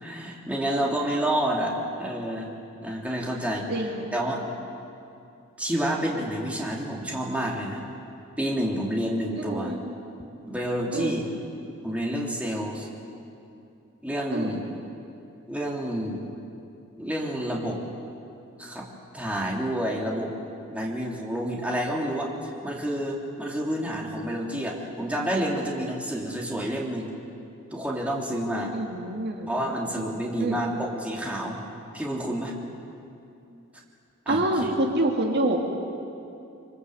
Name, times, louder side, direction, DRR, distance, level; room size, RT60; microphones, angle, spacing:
voice 1, 0.0-2.5 2.8-4.4 5.6-7.8 8.4-9.7 10.5-11.3 11.8-12.9 14.0-14.6 15.5-16.2 17.0-17.8 18.6-18.8 19.1-20.3 20.7-27.1 27.7-28.7 29.5-31.6 31.9-32.5 34.2-34.7, right 1 dB, 5° right, -3 dB, 3.3 m, -29 dB
voice 2, 3.7-4.1 9.4-9.9 10.9-11.2 14.3-14.5 28.7-29.5 30.4-30.6 34.3-35.6, right 1 dB, 55° right, 1 dB, 2.4 m, -27 dB
26.0 x 24.0 x 8.1 m, 2.6 s
head